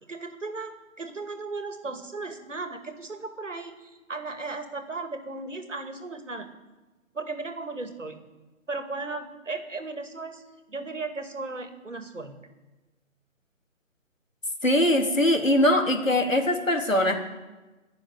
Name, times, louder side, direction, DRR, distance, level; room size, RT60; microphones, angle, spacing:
voice 1, 0.0-6.5 7.1-8.2 8.7-10.4 10.7-12.4, right 3 dB, 65° right, 7 dB, 2.4 m, -36 dB
voice 2, 14.6-17.1, left 1 dB, 75° left, 2 dB, 3.6 m, -22 dB
19.5 x 7.1 x 9.6 m, 1.2 s
figure-of-eight pair, 150°, 39 cm